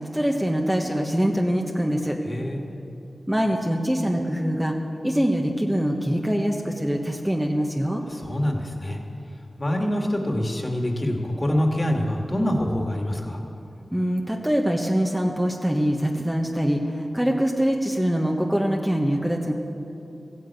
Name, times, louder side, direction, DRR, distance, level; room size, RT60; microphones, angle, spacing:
voice 1, 0.1-2.2 3.3-4.7 5.0-8.0 13.9-19.5, equal, 10° right, 1 dB, 1.3 m, -24 dB
voice 2, 2.3-2.8 8.1-9.0 9.6-13.4, left 1 dB, 35° left, 1 dB, 2.2 m, -25 dB
15.0 x 9.3 x 8.2 m, 2.9 s
cardioid pair, 55°, 0 cm